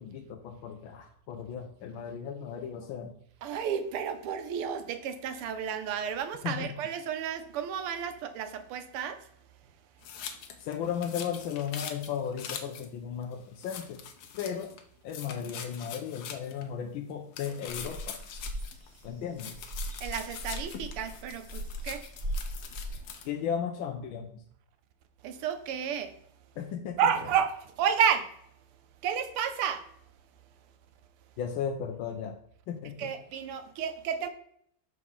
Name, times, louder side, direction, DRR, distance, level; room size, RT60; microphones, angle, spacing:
voice 1, 0.0-3.1 6.4-6.7 10.6-14.0 14.4-14.7 15.0-18.2 19.0-19.6 23.2-24.4 26.6-27.1 31.4-32.4 32.7-33.1, left 8 dB, 70° left, 4 dB, 1.4 m, -35 dB
voice 2, 3.4-9.2 20.0-22.0 25.2-26.1 27.0-28.3 29.0-29.8 33.0-34.3, right 8 dB, 85° right, 9 dB, 1.7 m, -31 dB
sound 1, 10.0-12.9 13.2-13.3 13.6-14.8 15.1-16.7 17.3-19.0 19.4-23.3, left 8 dB, 90° left, 1.8 m, -43 dB
sound 2, 17.7-23.0, equal, 25° right, 1.2 m, -38 dB
6.7 x 4.7 x 5.5 m, 0.68 s
omnidirectional pair, 2.4 m